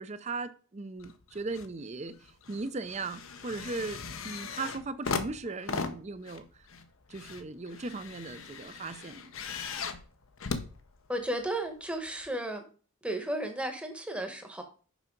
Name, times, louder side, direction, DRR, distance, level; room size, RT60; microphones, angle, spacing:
voice 1, 0.0-6.7 7.1-9.3, right 3 dB, 30° right, 0.5 m, -38 dB
sound 1, 1.0-1.7 2.1-11.5 12.2-12.3, left 4 dB, 70° left, 0.8 m, -39 dB
voice 2, 11.1-12.6 13.0-14.6, right 1 dB, 5° right, 1.0 m, -34 dB
6.1 x 5.6 x 5.2 m
head